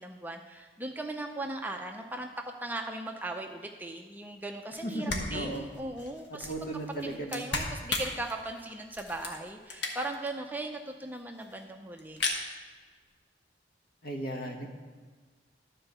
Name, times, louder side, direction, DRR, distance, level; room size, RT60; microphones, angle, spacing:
voice 1, 0.0-2.3 2.6-6.7 7.0-12.2, right 2 dB, 10° right, 3 dB, 0.5 m, -38 dB
sound 1, 4.7-4.8 5.1-10.3 10.6-10.7 10.9-11.0 11.2-11.6 12.0-12.4, left 3 dB, 85° left, 1.3 m, -36 dB
voice 2, 4.8-5.7 6.5-7.5 14.0-14.7, right 1 dB, 50° left, 2 dB, 1.3 m, -35 dB
12.5 x 4.4 x 6.6 m, 1.5 s
head